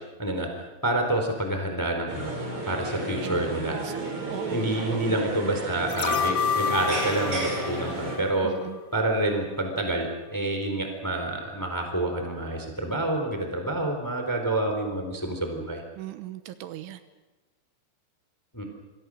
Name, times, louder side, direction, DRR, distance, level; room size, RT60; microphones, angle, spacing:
voice 1, 0.8-2.3 2.7-3.8 4.5-8.5 8.9-15.8 18.5-18.6, right 2 dB, 5° left, 4 dB, 2.7 m, -28 dB
sound 1, 2.1-8.2, right 1 dB, 30° right, 5.3 m, -33 dB
voice 2, 3.2-5.2 8.4-8.8 16.0-17.0, right 13 dB, 80° right, 10 dB, 3.3 m, -39 dB
sound 2, 5.9-9.0 9.4-9.5, left 6 dB, 65° left, 1.8 m, -29 dB
27.0 x 25.5 x 6.4 m, 1.2 s
omnidirectional pair, 5.7 m